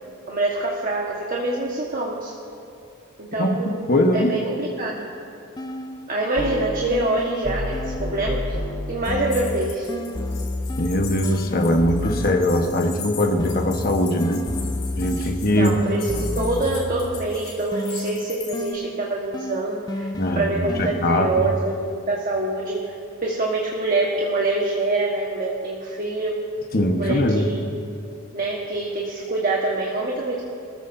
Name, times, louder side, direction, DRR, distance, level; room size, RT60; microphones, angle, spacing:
voice 1, 0.3-2.3 3.2-3.8 4.1-5.0 6.1-8.6 8.9-9.9 15.2-15.3 15.5-22.9 23.2-26.4 27.0-27.6 28.3-30.4, right 2 dB, 40° right, -3 dB, 1.4 m, -25 dB
voice 2, 3.4-4.3 10.8-14.4 15.0-15.8 20.2-21.5 26.7-27.5, left 1 dB, 45° left, 3 dB, 1.3 m, -21 dB
sound 1, 5.6-6.1 6.4-13.0 13.4-17.4 17.7-21.4, left 1 dB, 20° left, 0.4 m, -30 dB
sound 2, 9.0-18.7, left 7 dB, 75° left, 4.4 m, -40 dB
26.0 x 14.5 x 2.7 m, 2.5 s
head